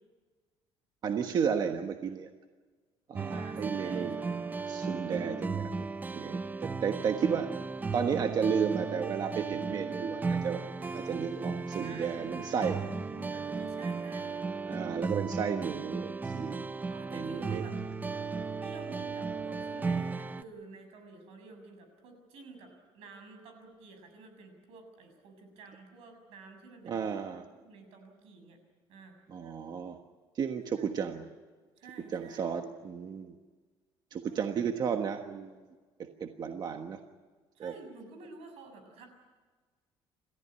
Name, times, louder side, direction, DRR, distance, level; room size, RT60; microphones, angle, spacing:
voice 1, 1.0-2.3 3.1-4.2 4.7-5.9 6.1-7.5 7.9-10.6 10.9-12.8 13.6-13.7 14.7-16.6 17.1-17.6 26.8-27.4 29.3-30.0 30.3-31.3 32.1-33.4 34.1-35.6 36.0-37.0 37.6-37.7, right 7 dB, 45° right, 5 dB, 1.4 m, -33 dB
sound 1, 3.2-20.4, right 4 dB, 20° right, 0.7 m, -35 dB
voice 2, 3.3-4.8 6.2-6.7 11.8-14.5 16.9-17.8 18.6-27.0 27.3-28.6 28.9-29.2 30.7-31.0 31.8-32.6 34.2-35.0 37.6-39.1, right 3 dB, 85° right, 6 dB, 6.8 m, -51 dB
28.5 x 14.5 x 9.8 m, 1.4 s
cardioid pair, 145°, 10 cm